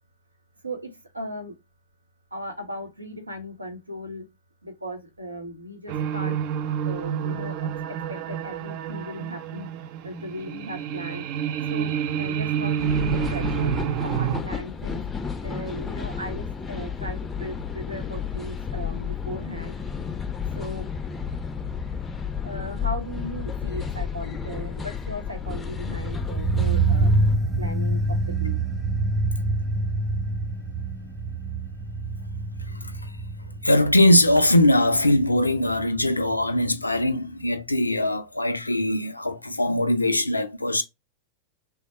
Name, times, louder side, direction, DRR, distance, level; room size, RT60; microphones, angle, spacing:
voice 1, 0.6-1.5 2.3-4.3 4.6-6.4 6.8-9.7 10.0-11.3 11.7-11.9 12.2-15.0 15.4-19.7 20.5-20.9 22.4-27.1 27.6-28.6, equal, 80° right, 0.7 m, -37 dB
sound 1, 5.9-14.4, right 8 dB, 45° right, 0.3 m, -28 dB
sound 2, 12.8-27.4, left 6 dB, 15° left, 0.4 m, -32 dB
sound 3, 25.7-36.8 37.0-37.1, right 2 dB, 10° right, 0.8 m, -26 dB
voice 2, 32.7-33.1 33.6-40.8, left 1 dB, 85° left, 0.4 m, -21 dB
3.3 x 2.0 x 4.1 m
figure-of-eight pair, 90°, 0 cm